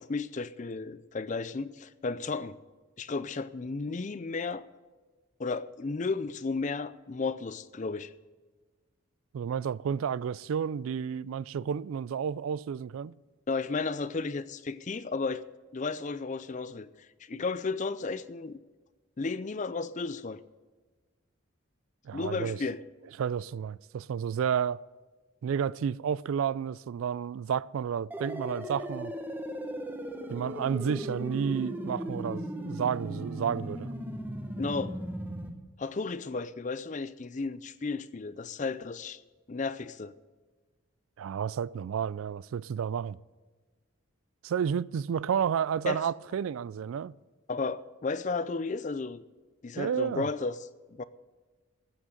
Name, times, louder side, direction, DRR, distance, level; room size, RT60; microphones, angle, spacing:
voice 1, 0.0-2.6 3.0-4.7 5.4-8.1 13.5-15.4 15.7-16.9 17.2-18.6 19.2-20.4 22.1-22.8 34.6-34.9 35.8-39.2 39.5-40.1 45.9-46.1 47.5-49.2 49.6-51.0, left 4 dB, 35° left, 0.4 m, -33 dB
voice 2, 9.3-13.1 17.3-17.4 22.1-22.6 23.2-24.8 25.4-29.1 30.3-33.9 41.2-43.2 44.4-47.1 49.8-50.3, right 7 dB, 75° right, 0.3 m, -31 dB
sound 1, 28.1-35.5, equal, 10° right, 0.9 m, -37 dB
14.5 x 6.3 x 8.0 m
head